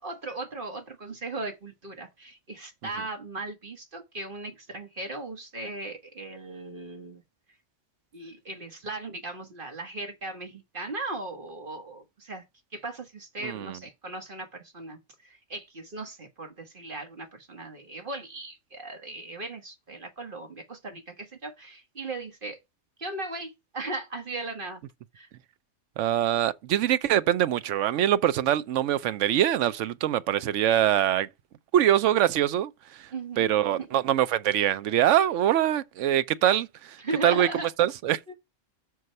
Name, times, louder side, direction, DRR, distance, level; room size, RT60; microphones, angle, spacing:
voice 1, 0.0-7.2 8.1-12.4 12.7-22.6 23.0-24.8 25.1-25.3 33.1-33.5 33.8-33.9 37.0-37.7 38.3-38.4, right 2 dB, 45° right, 1.5 m, -37 dB
voice 2, 13.4-13.8 26.0-31.3 31.7-33.1 33.4-37.5 37.8-38.3, right 11 dB, 90° right, 1.0 m, -24 dB
6.3 x 4.6 x 5.3 m
omnidirectional pair, 1.2 m